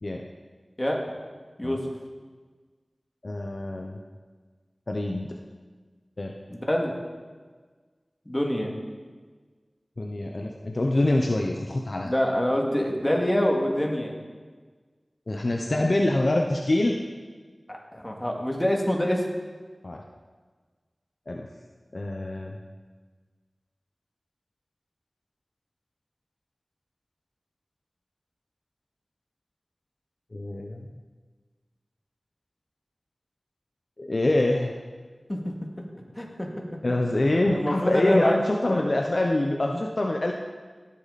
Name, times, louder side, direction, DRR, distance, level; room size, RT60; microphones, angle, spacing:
voice 1, 3.2-4.0 4.9-5.4 6.2-6.4 10.0-12.1 15.3-17.0 19.8-20.0 21.3-21.5 21.9-22.6 30.3-30.9 34.0-34.7 36.8-40.3, left 1 dB, 60° left, 1 dB, 0.9 m, -25 dB
voice 2, 6.5-6.9 8.3-8.7 12.0-14.1 17.7-19.2 35.3-35.5 36.1-36.5 37.3-38.4 38.7-38.8, equal, 20° left, 0 dB, 2.3 m, -25 dB
17.5 x 8.6 x 4.2 m, 1.4 s
wide cardioid pair, 45°, 0 cm